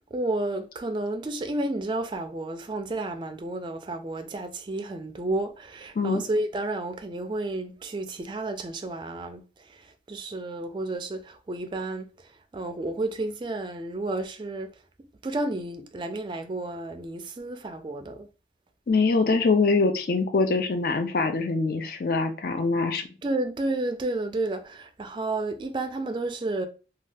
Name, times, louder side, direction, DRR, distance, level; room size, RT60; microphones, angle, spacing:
voice 1, 0.1-14.8 15.2-18.3 23.2-26.7, right 2 dB, 25° right, 0.3 m, -31 dB
voice 2, 18.9-23.1, left 3 dB, 50° left, 0.4 m, -24 dB
2.6 x 2.3 x 3.2 m
head